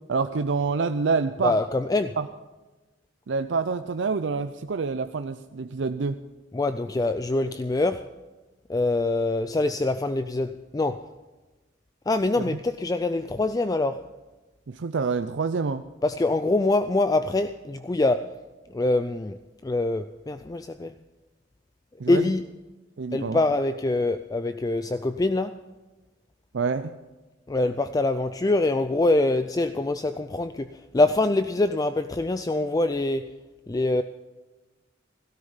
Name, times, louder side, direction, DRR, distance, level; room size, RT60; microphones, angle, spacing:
voice 1, 0.1-1.6 2.2-2.3 3.3-6.2 12.4-12.5 14.7-15.9 22.0-22.3 23.0-23.4 26.5-27.0, right 4 dB, 75° right, 0.5 m, -27 dB
voice 2, 1.4-2.2 6.5-8.1 8.7-11.1 12.1-14.1 16.0-18.4 18.7-21.0 22.1-22.4 23.1-25.7 27.5-33.4 33.7-34.0, left 2 dB, 20° left, 0.4 m, -24 dB
17.0 x 13.0 x 5.6 m
head